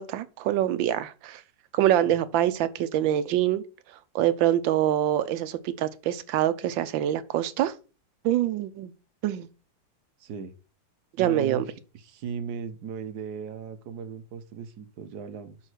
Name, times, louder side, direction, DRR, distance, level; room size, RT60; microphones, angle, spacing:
voice 1, 0.0-1.4 1.7-3.6 4.1-7.7 8.2-8.9 9.2-9.5 11.2-11.6, right 12 dB, 85° right, 1.4 m, -25 dB
voice 2, 10.2-10.5 11.2-11.6 11.9-15.6, right 6 dB, 65° right, 1.3 m, -36 dB
5.7 x 4.4 x 6.1 m
omnidirectional pair, 2.0 m